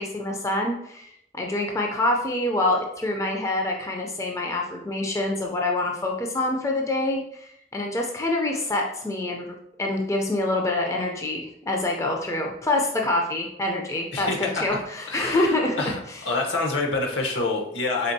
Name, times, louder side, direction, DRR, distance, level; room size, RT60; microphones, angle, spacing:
voice 1, 0.0-9.5 9.8-16.2, left 2 dB, 15° left, 1 dB, 0.4 m, -26 dB
voice 2, 14.1-18.1, left 3 dB, 75° left, 1 dB, 0.9 m, -27 dB
4.4 x 3.4 x 2.6 m, 0.75 s
head